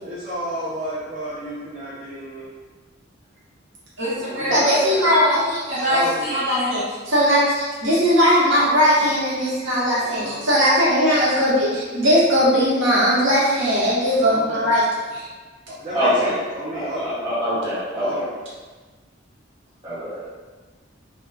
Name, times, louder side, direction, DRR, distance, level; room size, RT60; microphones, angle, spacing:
voice 1, 0.0-2.5 4.1-5.1 5.9-6.4 10.0-10.5 14.2-14.7 15.7-17.3 17.9-18.4, equal, 40° right, -9 dB, 0.5 m, -31 dB
voice 2, 4.0-14.8 15.1-15.3, equal, 80° right, -8 dB, 0.9 m, -19 dB
voice 3, 15.9-16.3 16.7-18.2 19.8-20.2, equal, 20° right, -12 dB, 1.3 m, -24 dB
2.3 x 2.2 x 3.3 m, 1.3 s
head